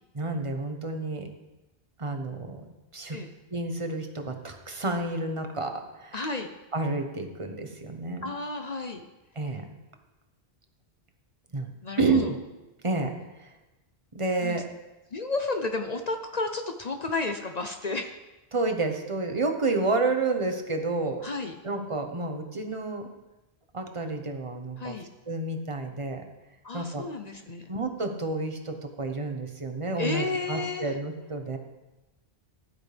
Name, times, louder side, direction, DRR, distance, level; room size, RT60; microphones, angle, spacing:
voice 1, 0.1-1.3 2.0-2.6 2.9-3.2 3.5-6.2 6.7-8.3 9.4-9.6 11.5-11.7 12.0-12.4 12.8-13.5 14.1-14.6 18.5-21.2 21.6-23.1 23.7-25.0 25.3-26.2 26.7-27.0 27.7-31.6, right 3 dB, 30° right, 4 dB, 1.2 m, -30 dB
voice 2, 6.1-6.5 8.2-9.1 11.8-12.2 14.4-14.6 15.1-18.2 21.2-21.5 24.8-25.1 26.6-27.7 30.0-31.0, left 3 dB, 45° left, 6 dB, 0.8 m, -32 dB
14.5 x 11.0 x 3.5 m, 1.0 s
omnidirectional pair, 1.1 m